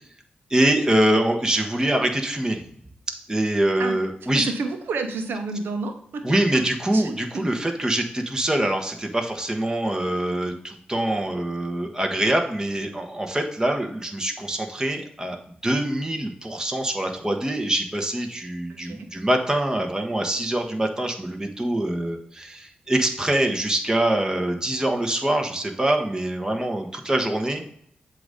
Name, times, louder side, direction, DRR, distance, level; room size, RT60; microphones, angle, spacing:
voice 1, 0.5-2.6 3.3-4.4 6.2-15.4 15.6-27.6, right 1 dB, 20° right, 3 dB, 1.3 m, -24 dB
voice 2, 4.3-6.4 6.9-7.4 18.7-19.1, right 3 dB, 80° right, 7 dB, 0.8 m, -30 dB
7.6 x 2.8 x 5.1 m, 0.67 s
supercardioid pair, 45°, 4 cm